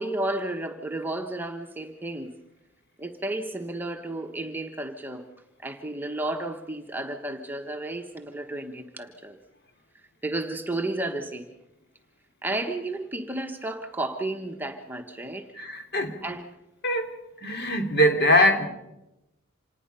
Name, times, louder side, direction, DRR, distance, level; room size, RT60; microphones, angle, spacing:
voice 1, 0.0-2.3 3.0-5.2 5.6-9.4 10.2-11.5 12.4-15.5 16.2-16.5, right 2 dB, 10° right, 4 dB, 1.2 m, -32 dB
voice 2, 15.5-16.1 16.8-17.1 17.4-18.7, equal, 50° left, 5 dB, 3.1 m, -22 dB
26.5 x 19.5 x 5.6 m, 0.91 s
head